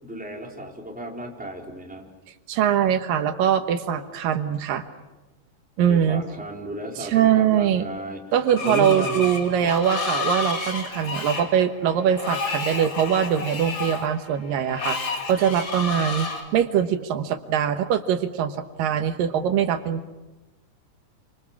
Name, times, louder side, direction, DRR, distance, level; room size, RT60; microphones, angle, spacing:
voice 1, 0.0-2.1 5.9-8.2 8.6-9.3, equal, ahead, 0 dB, 3.6 m, -34 dB
voice 2, 2.5-4.8 5.8-6.2 7.0-7.9 8.3-20.2, right 9 dB, 85° right, 9 dB, 2.9 m, -22 dB
Screech, 8.5-16.4, left 4 dB, 35° left, 3.4 m, -31 dB
29.0 x 25.5 x 7.3 m, 1.1 s
omnidirectional pair, 3.9 m